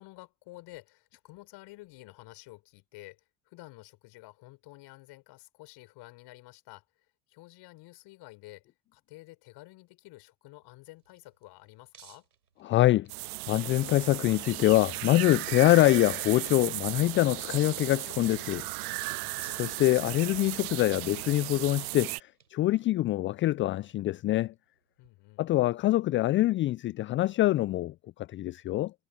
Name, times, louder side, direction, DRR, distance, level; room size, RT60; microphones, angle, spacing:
voice 1, 0.0-12.3 19.1-19.6 25.0-25.4, left 20 dB, 60° left, 5.5 m, -51 dB
sound 1, 10.6-25.1, right 7 dB, 90° right, 4.9 m, -61 dB
voice 2, 12.6-13.1 13.5-18.7 19.6-24.5 25.4-28.9, left 15 dB, 30° left, 0.4 m, -25 dB
sound 2, 13.1-22.2, right 24 dB, 70° right, 0.8 m, -36 dB
hypercardioid pair, 65°, 46 cm